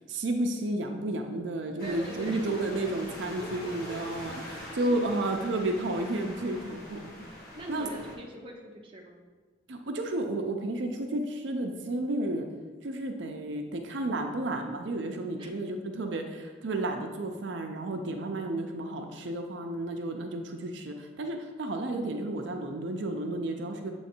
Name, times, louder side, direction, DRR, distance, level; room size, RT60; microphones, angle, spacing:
voice 1, 0.1-7.1 7.7-7.9 9.7-12.5 12.8-23.9, right 2 dB, 75° right, 4 dB, 0.5 m, -32 dB
sound 1, 1.8-8.1, left 1 dB, 50° left, 1.2 m, -44 dB
voice 2, 1.8-3.0 3.4-5.2 7.5-9.2 15.2-15.5, right 1 dB, 25° right, 0 dB, 0.6 m, -43 dB
7.3 x 3.1 x 4.4 m, 1.3 s
head